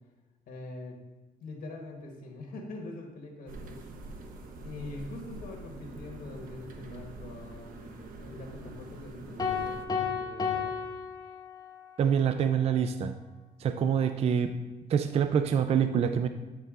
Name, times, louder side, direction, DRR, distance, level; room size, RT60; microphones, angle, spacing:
voice 1, 0.5-1.0 1.4-3.9 4.6-10.7, left 2 dB, 65° left, 0 dB, 1.4 m, -43 dB
sound 1, 3.5-9.9, right 2 dB, 60° right, 0.9 m, -45 dB
sound 2, 9.4-11.9, left 6 dB, 25° left, 0.8 m, -32 dB
voice 2, 12.0-13.1 13.6-14.5 14.9-16.3, right 8 dB, 40° right, 8 dB, 0.4 m, -26 dB
8.6 x 4.0 x 3.7 m, 1.2 s
cardioid pair, 125°, 16 cm